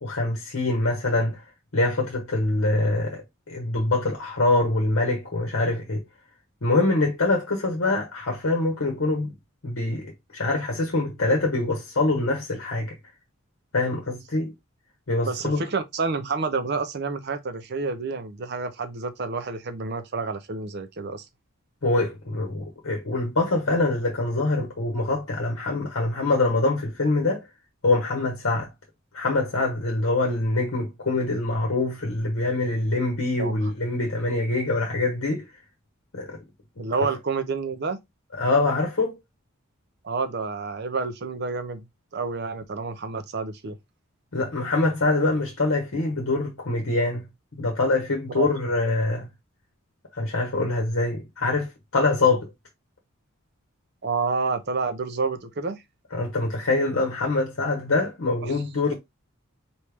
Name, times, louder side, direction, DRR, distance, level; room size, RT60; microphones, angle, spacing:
voice 1, 0.0-1.4 1.7-6.0 6.6-9.3 9.6-12.9 13.7-14.5 15.1-15.6 21.8-27.4 27.8-28.7 29.1-35.4 36.1-36.4 38.4-39.2 44.3-47.2 47.6-49.3 50.1-52.5 56.1-58.9, left 2 dB, 65° left, 1.1 m, -24 dB
voice 2, 15.2-21.2 33.4-33.7 36.8-38.0 40.0-41.9 42.1-43.8 48.4-48.5 54.0-55.8 58.4-58.6, right 4 dB, 50° right, 0.6 m, -29 dB
4.3 x 3.2 x 3.4 m
head